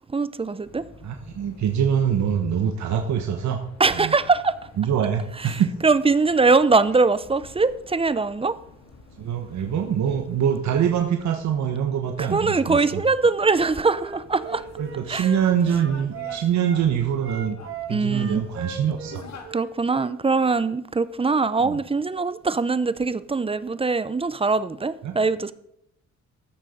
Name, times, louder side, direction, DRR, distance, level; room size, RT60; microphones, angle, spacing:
voice 1, 0.1-0.8 3.8-4.5 5.4-8.6 12.2-14.6 15.1-15.3 17.9-18.4 19.5-25.5, right 4 dB, 20° right, 0.6 m, -22 dB
sound 1, 0.6-19.5, left 4 dB, 60° left, 2.2 m, -48 dB
voice 2, 1.0-3.6 3.9-4.1 4.8-5.7 9.2-12.8 14.8-17.6 17.9-19.2 21.6-21.8 25.0-25.1, right 8 dB, 65° right, 1.3 m, -24 dB
Wind instrument woodwind instrument, 13.5-16.8 17.2-20.6, right 6 dB, 45° right, 2.6 m, -38 dB
14.0 x 6.6 x 5.1 m
cardioid pair, 90°, 30 cm